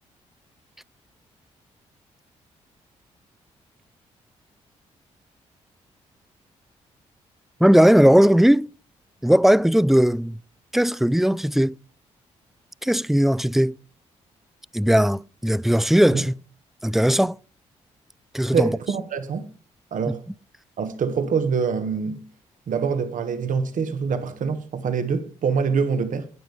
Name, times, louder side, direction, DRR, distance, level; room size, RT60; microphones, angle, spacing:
voice 1, 7.6-8.7 9.2-10.4 10.7-11.7 12.8-13.8 14.7-16.3 16.8-17.4 18.3-18.7, equal, ahead, 0.4 m, -18 dB
voice 2, 18.5-19.5 19.9-20.2 20.8-22.2 22.7-26.2, right 6 dB, 60° right, 1.4 m, -25 dB
12.5 x 9.1 x 3.5 m
hypercardioid pair, 40°, 15 cm